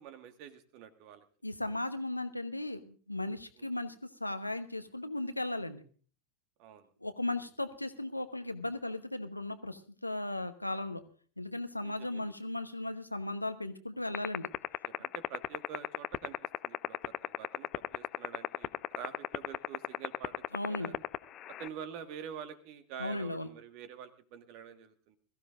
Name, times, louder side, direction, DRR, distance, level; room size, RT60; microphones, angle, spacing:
voice 1, 0.0-1.2 3.6-3.7 6.6-6.9 11.8-12.3 14.8-20.3 20.7-20.9 21.5-25.2, right 8 dB, 45° right, 9 dB, 1.6 m, -47 dB
voice 2, 1.4-5.8 7.0-11.0 11.4-14.5 20.5-20.9 23.0-23.5, left 2 dB, 85° left, 9 dB, 1.1 m, -36 dB
sound 1, 14.1-21.7, left 13 dB, 30° left, 0.6 m, -31 dB
21.5 x 15.0 x 2.6 m, 0.42 s
figure-of-eight pair, 90°, 0 cm